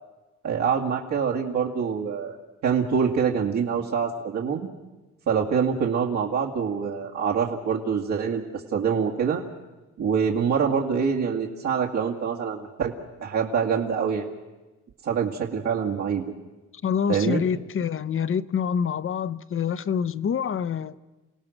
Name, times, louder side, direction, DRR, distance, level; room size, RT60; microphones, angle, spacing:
voice 1, 0.4-2.4 2.6-4.7 5.3-9.4 10.0-12.9 13.2-14.3 15.0-16.3 17.1-17.4, right 6 dB, 65° right, 2.1 m, -25 dB
voice 2, 16.8-20.9, left 7 dB, 45° left, 0.8 m, -26 dB
29.0 x 17.5 x 6.5 m
cardioid pair, 90°, 30 cm